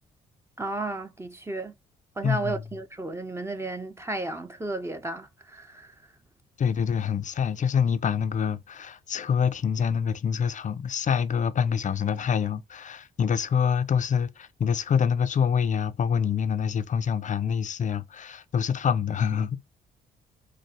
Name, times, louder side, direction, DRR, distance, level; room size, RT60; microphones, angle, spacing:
voice 1, 0.6-1.7 2.2-5.9, right 2 dB, 15° right, 0.9 m, -33 dB
voice 2, 2.2-2.6 6.6-19.6, left 7 dB, 45° left, 0.6 m, -26 dB
4.6 x 2.2 x 4.3 m
hypercardioid pair, 50°, 18 cm